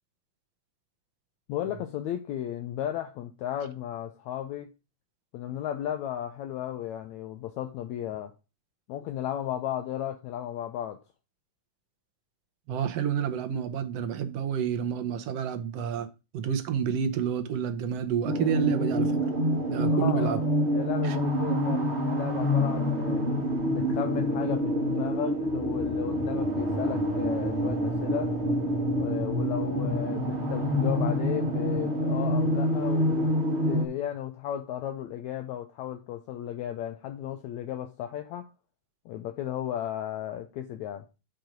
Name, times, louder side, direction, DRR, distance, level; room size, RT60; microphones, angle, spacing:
voice 1, 1.5-4.7 5.3-8.3 8.9-11.0 19.8-20.4 20.7-23.2 23.7-28.3 28.9-33.3 33.6-38.5 39.1-41.1, left 11 dB, 75° left, 1.9 m, -34 dB
voice 2, 12.7-16.1 16.3-19.2 19.7-20.4 21.0-21.2, right 8 dB, 65° right, 1.7 m, -29 dB
sound 1, 18.2-33.9, equal, 35° right, 1.1 m, -27 dB
7.7 x 4.6 x 5.0 m
omnidirectional pair, 3.6 m